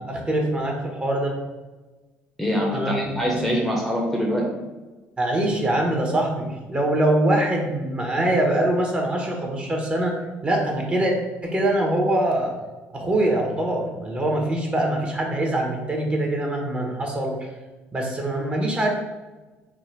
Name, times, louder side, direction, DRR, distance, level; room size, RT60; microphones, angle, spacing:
voice 1, 0.0-1.4 2.7-3.1 5.2-11.1 11.4-12.5 12.9-17.5 17.9-18.9, right 1 dB, 25° right, 0 dB, 1.1 m, -23 dB
voice 2, 2.4-4.5, equal, 5° left, -1 dB, 0.9 m, -24 dB
3.7 x 2.4 x 4.6 m, 1.2 s
supercardioid pair, 75°, 5 cm